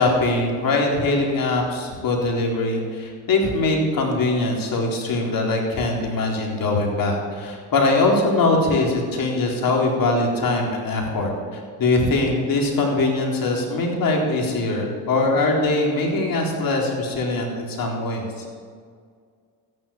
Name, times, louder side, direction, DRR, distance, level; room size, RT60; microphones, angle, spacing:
voice 1, 0.0-18.4, left 2 dB, 50° left, 0 dB, 4.1 m, -22 dB
13.5 x 11.0 x 7.2 m, 2.1 s
supercardioid pair, 80°, 44 cm